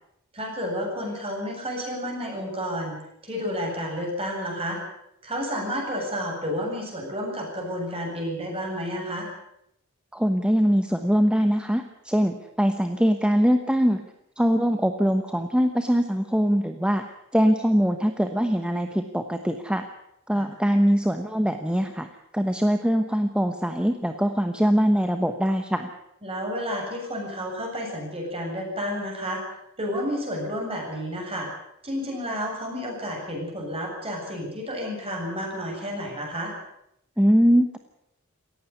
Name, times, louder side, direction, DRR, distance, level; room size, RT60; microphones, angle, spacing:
voice 1, 0.3-2.9 3.2-4.8 5.2-9.3 20.3-20.5 26.2-29.4 29.8-31.5 31.8-36.5, equal, 30° right, 0 dB, 7.8 m, -31 dB
voice 2, 10.1-14.0 14.4-17.0 17.3-19.9 20.3-22.1 22.3-25.9 37.2-37.8, equal, 5° right, 7 dB, 1.1 m, -22 dB
18.0 x 15.5 x 9.8 m, 0.79 s
head